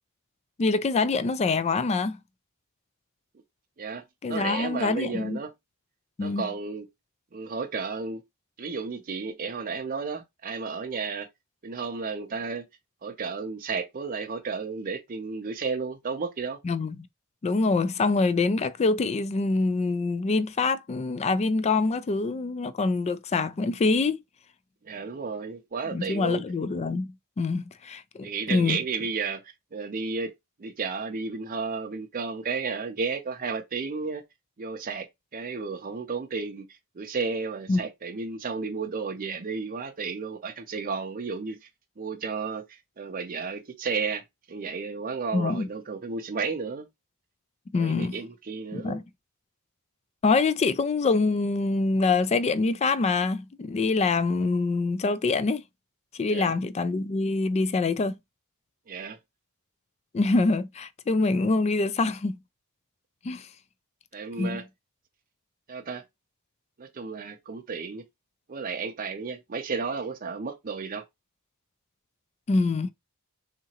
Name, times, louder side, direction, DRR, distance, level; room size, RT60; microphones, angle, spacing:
voice 1, 0.6-2.2 4.2-5.4 6.2-6.5 16.6-17.0 17.4-24.2 25.9-28.8 37.7-37.8 45.3-45.7 47.7-48.2 48.7-49.0 50.2-55.6 56.1-58.2 60.1-62.4 63.2-63.5 64.4-64.6 72.5-72.9, left 3 dB, 30° left, 0.3 m, -25 dB
voice 2, 4.3-5.5 6.2-6.9 7.3-8.2 8.6-11.3 11.6-12.6 13.0-16.6 24.8-26.4 28.2-29.4 29.7-30.3 30.6-34.2 34.6-35.1 35.3-41.6 42.0-44.2 44.5-46.9 47.8-49.0 56.3-56.5 58.9-59.2 64.1-64.6 65.7-66.0 66.8-68.0 68.5-71.0, right 5 dB, 40° right, 0.5 m, -33 dB
3.7 x 2.9 x 2.8 m
head